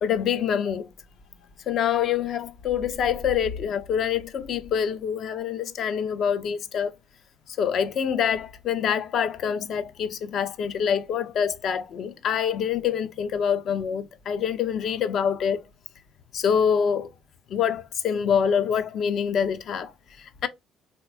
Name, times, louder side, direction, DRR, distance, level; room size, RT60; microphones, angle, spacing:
voice 1, 0.0-0.9 1.7-6.9 7.6-15.6 16.3-17.1 17.5-19.9 20.4-20.5, left 8 dB, 60° left, 0.5 m, -25 dB
3.2 x 2.9 x 2.2 m
supercardioid pair, 60°, 0 cm